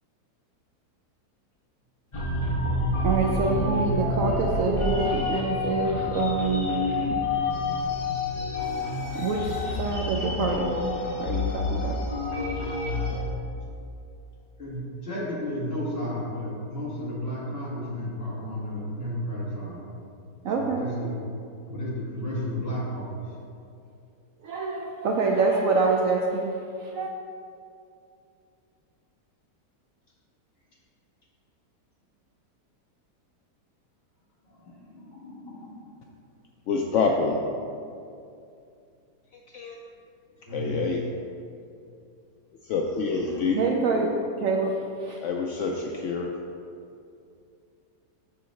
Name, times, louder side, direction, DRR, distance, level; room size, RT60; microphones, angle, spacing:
sound 1, 2.1-13.2, left 2 dB, 20° left, 1.1 m, -28 dB
voice 1, 3.0-7.2 9.1-10.8 11.2-12.0 20.4-20.9 24.4-27.1 43.5-44.1 44.4-45.2, right 4 dB, 70° right, 1 dB, 0.8 m, -26 dB
voice 2, 14.6-19.8 20.5-21.1 21.7-23.1 34.5-35.7 40.5-40.7 43.1-44.1, equal, 35° left, -7 dB, 2.0 m, -33 dB
voice 3, 36.7-37.4 39.3-39.8 40.5-41.0 42.6-43.6 45.2-46.3, left 4 dB, 75° left, 1 dB, 0.6 m, -27 dB
7.1 x 4.0 x 6.4 m, 2.5 s
omnidirectional pair, 1.8 m